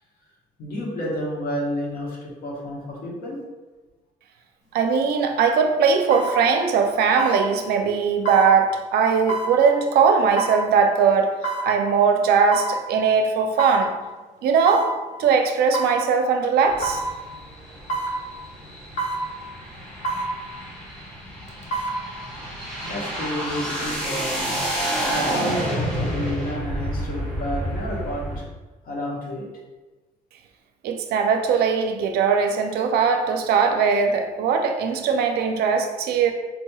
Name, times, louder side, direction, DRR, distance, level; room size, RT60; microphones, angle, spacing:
voice 1, 0.6-3.4 22.8-24.5 25.0-28.4 28.8-29.5, equal, 60° left, -3 dB, 1.2 m, -30 dB
voice 2, 4.7-11.3 11.6-14.0 14.4-14.9 15.2-17.0 30.8-36.3, right 5 dB, 70° right, 6 dB, 0.5 m, -20 dB
sound 1, 5.0-5.1 6.1-6.4 7.2-7.4 8.3-8.5 9.3-9.5 10.4-10.6 11.4-11.7 12.5-12.8 13.6-13.8 14.7-14.9 15.7-16.0 16.8-17.1 17.9-18.2 19.0-19.2 20.0-20.3 21.5-22.0 22.4-22.5, right 3 dB, 45° left, 0.8 m, -26 dB
sound 2, 16.7-28.4, equal, 5° left, 1.3 m, -30 dB
4.1 x 3.0 x 2.3 m, 1.2 s
cardioid pair, 110°, 17 cm